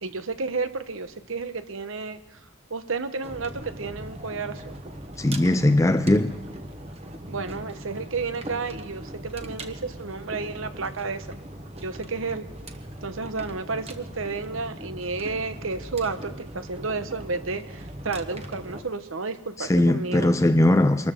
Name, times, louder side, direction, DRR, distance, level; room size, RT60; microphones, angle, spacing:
voice 1, 0.0-2.4 2.7-4.8 7.3-11.3 11.8-12.5 13.0-20.4, right 4 dB, 75° right, 1.1 m, -32 dB
sound 1, 3.2-18.8, right 1 dB, 30° right, 1.1 m, -40 dB
voice 2, 5.2-6.4 19.6-21.1, left 1 dB, 15° left, 0.4 m, -20 dB
24.0 x 13.5 x 3.7 m
head